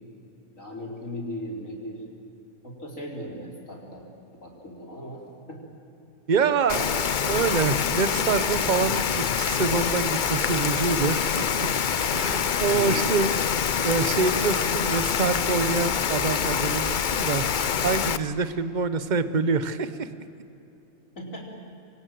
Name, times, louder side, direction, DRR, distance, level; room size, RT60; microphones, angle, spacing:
voice 1, 0.6-2.0 2.6-4.1 4.3-5.2 5.5-5.6 12.7-13.1 21.2-21.5, left 1 dB, 65° left, -2 dB, 4.8 m, -37 dB
voice 2, 6.3-11.7 12.1-13.3 13.8-17.5 17.8-20.1, right 5 dB, 35° right, 11 dB, 1.0 m, -26 dB
Rain, 6.7-18.2, left 7 dB, 50° left, 0.6 m, -25 dB
27.0 x 23.5 x 7.7 m, 2.8 s
omnidirectional pair, 1.5 m